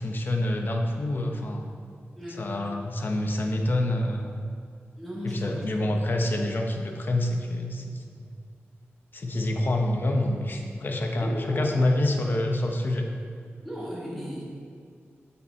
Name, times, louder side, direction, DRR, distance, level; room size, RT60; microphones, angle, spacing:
voice 1, 0.0-1.7 2.4-4.4 5.2-8.3 9.1-13.1, left 1 dB, 45° left, 3 dB, 0.9 m, -27 dB
voice 2, 5.0-5.7 11.2-11.7 13.6-14.4, equal, 5° left, -6 dB, 1.7 m, -35 dB
8.3 x 7.3 x 4.4 m, 2.2 s
wide cardioid pair, 135°, 5 cm